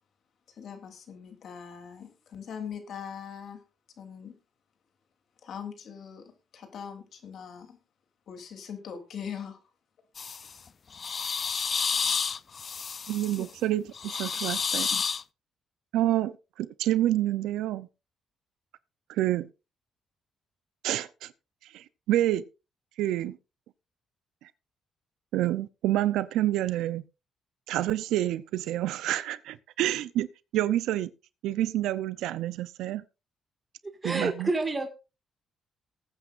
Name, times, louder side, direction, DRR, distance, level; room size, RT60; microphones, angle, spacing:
voice 1, 0.5-3.6 4.0-4.4 5.4-7.8 8.3-9.6, left 7 dB, 65° left, 3.1 m, -41 dB
sound 1, 10.2-10.5 10.9-13.4 13.9-15.2, left 6 dB, 45° left, 0.5 m, -30 dB
voice 2, 13.1-15.0 15.9-17.9 19.1-19.5 20.8-21.3 21.7-22.4 23.0-23.4 25.3-27.0 27.7-30.3 30.5-31.1 31.4-33.0 34.0-34.5, right 14 dB, 90° right, 0.6 m, -28 dB
voice 3, 33.8-34.9, right 2 dB, 25° right, 2.0 m, -29 dB
20.0 x 8.9 x 2.6 m
cardioid pair, 90°, 0 cm